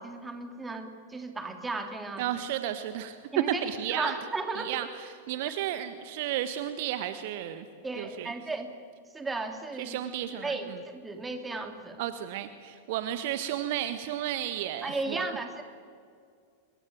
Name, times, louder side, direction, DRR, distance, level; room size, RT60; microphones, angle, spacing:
voice 1, 0.0-2.3 3.3-3.6 3.9-4.9 7.8-8.7 9.1-10.0 10.4-12.0 14.8-15.6, right 3 dB, 10° right, 5 dB, 3.3 m, -35 dB
voice 2, 2.2-3.2 3.5-4.1 4.5-4.9 5.3-7.6 7.9-8.3 9.8-10.6 12.0-15.2, right 11 dB, 50° right, 10 dB, 1.4 m, -33 dB
25.5 x 22.5 x 9.4 m, 2.3 s
figure-of-eight pair, 90°, 0 cm